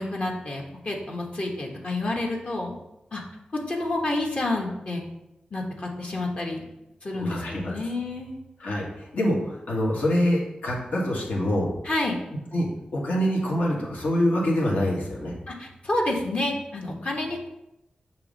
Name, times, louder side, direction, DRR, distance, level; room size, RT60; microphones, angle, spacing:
voice 1, 0.0-2.7 3.1-3.2 3.5-5.0 5.5-6.6 7.0-8.4 11.8-12.2 15.5-17.5, left 2 dB, 50° left, 0 dB, 1.2 m, -29 dB
voice 2, 7.1-7.7 8.6-11.7 12.5-12.7 12.9-15.3, equal, 75° left, -3 dB, 1.5 m, -25 dB
6.9 x 3.0 x 5.2 m, 0.88 s
wide cardioid pair, 85°, 3 cm